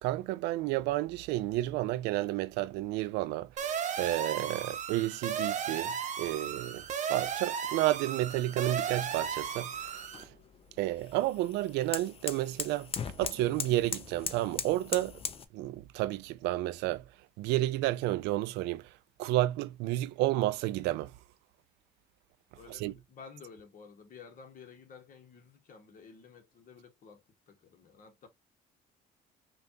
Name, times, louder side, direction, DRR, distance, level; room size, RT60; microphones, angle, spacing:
voice 1, 0.0-3.5 4.0-6.8 7.1-10.0 10.8-12.9 13.2-15.2 15.5-17.0 17.4-18.8 19.2-21.1 22.7-22.9, right 16 dB, 90° right, 0.4 m, -31 dB
sound 1, 3.6-10.2, right 8 dB, 45° right, 0.8 m, -35 dB
sound 2, 8.7-15.4, left 6 dB, 35° left, 0.6 m, -40 dB
voice 2, 22.6-28.3, left 5 dB, 50° left, 1.2 m, -53 dB
5.2 x 2.4 x 2.7 m
cardioid pair, 110°, 17 cm